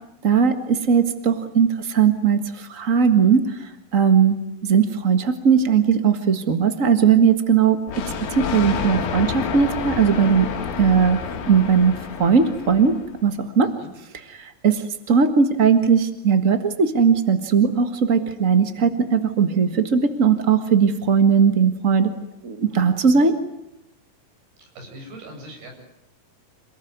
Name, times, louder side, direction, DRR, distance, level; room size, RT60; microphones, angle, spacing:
voice 1, 0.2-4.4 4.6-10.5 10.8-11.2 11.5-13.7 14.3-22.1 22.4-23.3, right 6 dB, 50° right, 8 dB, 0.9 m, -19 dB
Thunder, 7.9-13.2, left 6 dB, 75° left, 4.0 m, -29 dB
voice 2, 24.6-25.7, right 1 dB, 85° right, 2 dB, 9.8 m, -40 dB
28.0 x 19.5 x 9.4 m, 0.84 s
omnidirectional pair, 4.3 m